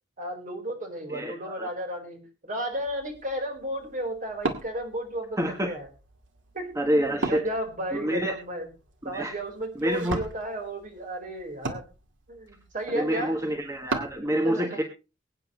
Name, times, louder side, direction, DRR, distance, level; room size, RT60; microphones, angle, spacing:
voice 1, 0.2-5.9 6.5-6.7 7.1-8.7 9.0-11.8 12.3-13.4 14.4-14.8, right 1 dB, 45° right, 3 dB, 4.5 m, -33 dB
voice 2, 1.1-1.7 5.4-5.7 6.7-7.4 7.9-8.3 9.0-9.3 9.7-10.2 12.9-14.8, equal, 15° right, 4 dB, 1.3 m, -27 dB
Wood, 2.7-14.2, right 3 dB, 80° right, 2.0 m, -39 dB
22.5 x 9.2 x 3.2 m, 0.30 s
head